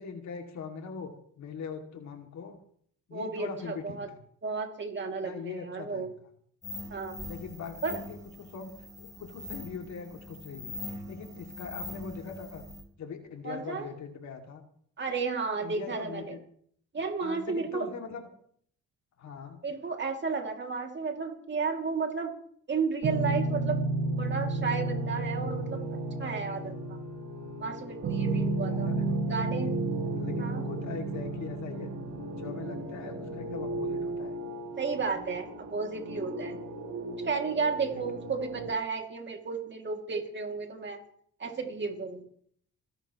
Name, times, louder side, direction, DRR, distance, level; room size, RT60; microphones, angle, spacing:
voice 1, 0.0-2.6 3.1-4.2 5.2-6.1 7.2-8.2 8.5-8.7 9.0-12.6 13.0-14.7 15.6-16.4 17.2-18.2 19.2-19.6 28.7-29.2 30.2-31.9 32.4-34.3 37.9-38.0, left 6 dB, 65° left, 4 dB, 2.6 m, -41 dB
voice 2, 3.1-4.1 4.4-6.1 6.9-7.2 7.8-8.0 13.4-13.8 15.0-16.4 16.9-17.9 19.6-22.3 22.7-23.8 24.2-25.8 26.2-27.0 27.6-28.9 29.3-29.7 30.4-30.6 34.8-36.6 37.2-41.0 41.4-42.2, right 4 dB, 35° right, 3 dB, 2.7 m, -33 dB
sound 1, 6.6-12.8, left 2 dB, 10° right, 4.5 m, -42 dB
sound 2, 23.0-38.7, right 2 dB, 70° right, 4.9 m, -33 dB
29.5 x 11.0 x 3.1 m, 0.62 s
cardioid pair, 90°, 30 cm